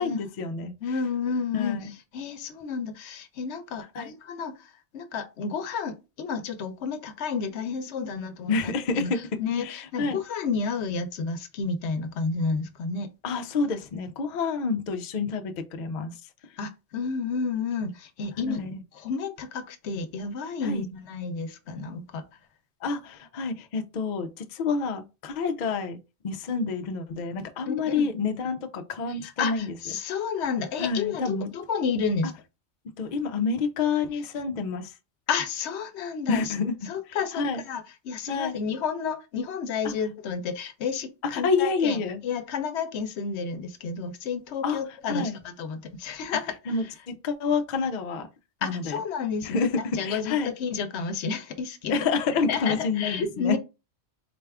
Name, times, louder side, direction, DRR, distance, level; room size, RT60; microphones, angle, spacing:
voice 1, 0.0-0.7 1.5-1.9 3.9-4.1 8.5-9.2 9.6-10.2 13.2-16.1 18.5-18.8 20.6-20.8 22.8-26.0 26.2-29.7 30.8-31.5 33.0-34.9 36.3-36.8 37.3-37.6 38.3-38.5 41.3-42.2 44.6-44.8 45.1-45.3 46.7-48.3 48.6-49.0 49.4-49.7 50.0-50.5 51.9-53.6, left 4 dB, 55° left, 0.5 m, -28 dB
voice 2, 0.8-9.1 9.4-13.1 16.6-18.6 18.9-22.2 27.7-28.1 29.1-32.3 35.3-36.5 36.9-46.8 48.6-52.0 52.5-53.6, left 5 dB, 80° left, 0.9 m, -31 dB
4.1 x 2.3 x 3.3 m
omnidirectional pair, 1.2 m